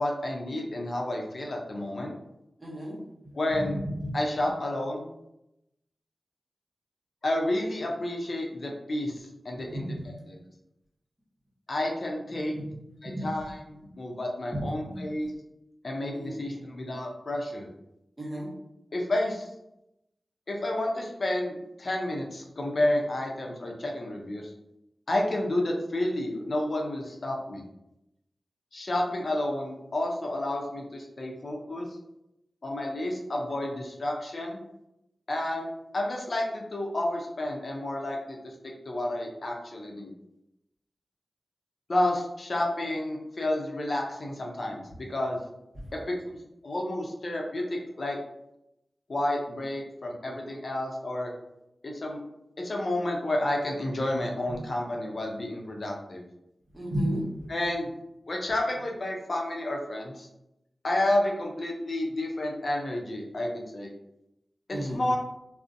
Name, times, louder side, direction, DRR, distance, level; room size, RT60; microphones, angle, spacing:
voice 1, 0.0-2.1 3.3-3.8 4.1-5.1 7.2-9.9 10.3-10.4 11.7-12.6 13.0-15.3 15.8-17.7 18.9-19.5 20.5-24.4 25.1-27.6 28.7-31.9 32.6-34.6 35.3-38.5 38.9-40.1 41.9-45.4 46.0-46.4 46.6-48.2 49.1-51.3 51.8-52.2 52.6-56.2 57.5-57.9 58.3-60.3 60.8-63.9 64.7-65.2, left 1 dB, 65° left, 0 dB, 0.5 m, -30 dB
voice 2, 2.6-3.0 3.5-4.1 9.7-10.0 12.5-12.6 13.2-13.3 14.5-15.0 16.1-16.6 18.2-18.5 54.5-54.6 56.7-57.2 64.7-65.0, equal, 35° right, -4 dB, 0.9 m, -32 dB
2.5 x 2.0 x 2.5 m, 0.87 s
cardioid pair, 45°, 0 cm